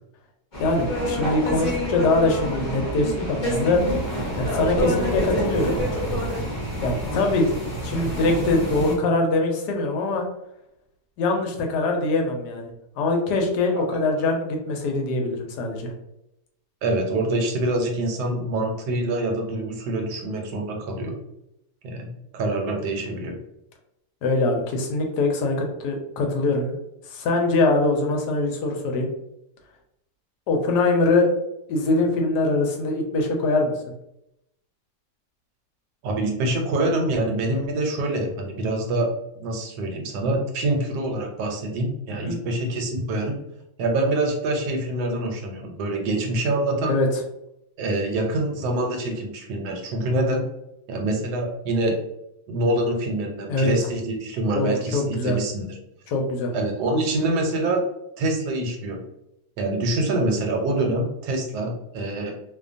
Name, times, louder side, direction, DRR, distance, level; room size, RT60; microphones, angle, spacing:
sound 1, 0.5-9.0, equal, 40° left, 0.8 m, -27 dB
voice 1, 0.6-3.8 4.4-5.8 6.8-7.5 7.8-10.2 11.2-12.7 13.0-15.9 24.2-26.7 27.1-29.1 30.5-31.3 31.7-33.7 42.2-42.4 46.9-47.1 53.5-53.7 54.5-55.4 56.1-56.5, left 2 dB, 75° left, 2 dB, 1.1 m, -23 dB
voice 2, 16.8-21.2 21.8-22.1 22.3-23.4 36.0-39.1 39.4-43.4 43.8-47.0 47.8-50.5 50.9-52.0 52.5-55.8 56.5-57.8 58.2-59.0 59.6-62.3, right 2 dB, 75° right, 2 dB, 1.1 m, -25 dB
2.7 x 2.2 x 2.4 m, 0.84 s
omnidirectional pair, 1.8 m